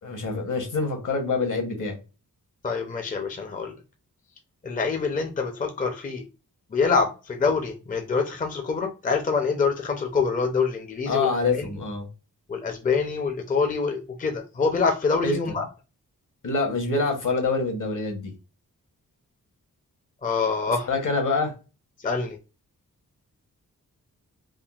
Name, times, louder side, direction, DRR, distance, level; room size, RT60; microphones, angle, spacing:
voice 1, 0.0-2.0 11.1-12.1 15.2-15.6 16.4-18.3 20.9-21.5, left 3 dB, 60° left, 1.1 m, -26 dB
voice 2, 2.6-3.8 4.6-6.2 6.7-11.3 11.6-11.7 12.5-15.7 20.2-20.9 22.0-22.4, left 5 dB, 25° left, 0.5 m, -25 dB
3.6 x 2.0 x 2.3 m
wide cardioid pair, 85°, 34 cm